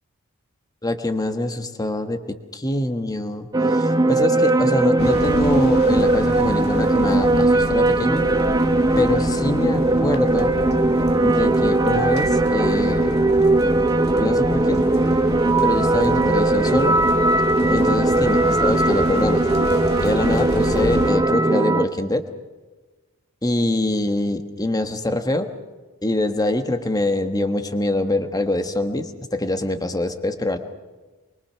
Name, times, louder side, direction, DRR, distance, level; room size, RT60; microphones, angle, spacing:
voice 1, 0.8-2.2 2.5-8.2 9.0-10.5 11.2-13.2 14.2-14.8 15.6-17.0 17.7-19.4 20.0-22.2 23.4-25.5 26.0-30.6, left 1 dB, 15° left, 7 dB, 1.4 m, -24 dB
sound 1, 3.5-21.9, right 2 dB, 15° right, 0.7 m, -19 dB
sound 2, 5.0-21.1, left 1 dB, 50° left, 1.9 m, -31 dB
25.0 x 23.0 x 5.8 m, 1.2 s
head